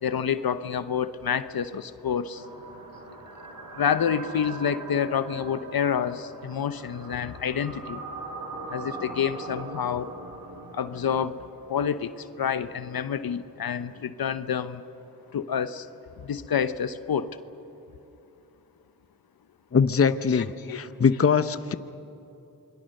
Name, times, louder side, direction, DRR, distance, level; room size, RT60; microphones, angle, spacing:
voice 1, 0.0-2.4 3.8-8.0 8.7-10.1 10.7-11.3 11.7-12.1 12.4-14.8 15.3-15.9 16.3-17.3 20.3-20.8, left 8 dB, 60° left, 13 dB, 1.0 m, -28 dB
sound 1, 2.3-12.5, right 2 dB, 50° right, 4.8 m, -41 dB
voice 2, 19.7-20.5 20.7-21.7, left 6 dB, 35° left, 13 dB, 0.9 m, -22 dB
27.5 x 22.5 x 6.6 m, 2.9 s
supercardioid pair, 45°, 40 cm